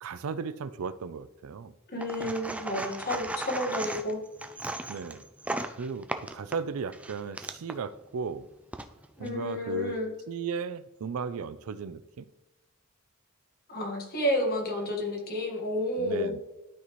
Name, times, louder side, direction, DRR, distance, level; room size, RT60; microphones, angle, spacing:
voice 1, 0.0-1.7 4.9-5.2 5.8-8.5 9.2-9.9 10.3-12.3 16.0-16.4, right 5 dB, 75° right, 15 dB, 0.4 m, -35 dB
voice 2, 1.9-4.2 9.2-10.1 13.7-16.3, left 1 dB, 45° left, 1 dB, 1.6 m, -30 dB
sound 1, 2.0-7.8 8.5-9.3, right 2 dB, 5° right, 0.3 m, -36 dB
12.5 x 4.1 x 3.1 m, 1.0 s
head